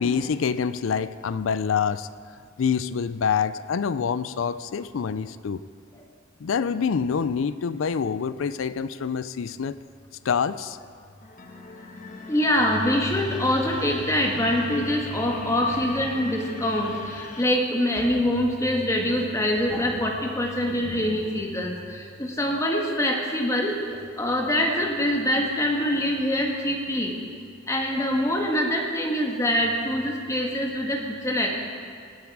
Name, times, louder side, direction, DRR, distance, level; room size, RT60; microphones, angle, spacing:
voice 1, 0.0-2.1 2.6-5.6 6.4-9.8 10.2-10.8, left 6 dB, 85° left, 15 dB, 0.4 m, -26 dB
sound 1, 11.2-17.4, left 3 dB, 40° left, 1.3 m, -41 dB
voice 2, 12.3-23.8 24.2-27.1 27.7-31.6, left 1 dB, 15° left, 0 dB, 1.5 m, -24 dB
19.0 x 9.6 x 4.8 m, 2.2 s
head